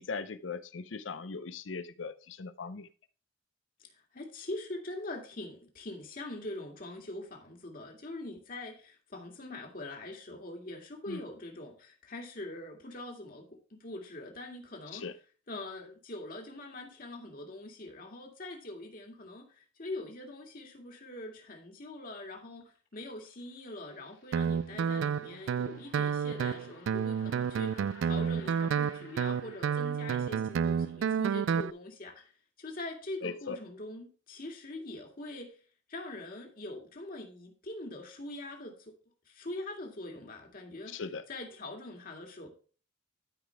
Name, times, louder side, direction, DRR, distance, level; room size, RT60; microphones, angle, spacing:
voice 1, 0.0-2.9 11.1-11.2 14.9-15.1 33.2-33.6 40.9-41.2, left 5 dB, 85° left, 0.6 m, -39 dB
voice 2, 3.8-15.0 15.5-32.3 32.6-35.6 35.9-38.9 39.3-41.0 41.3-42.5, left 2 dB, 50° left, 2.0 m, -43 dB
sound 1, 22.6-30.3, left 5 dB, 65° left, 3.1 m, -57 dB
Guitar, 24.3-31.7, right 7 dB, 85° right, 0.3 m, -30 dB
12.5 x 5.1 x 3.4 m
head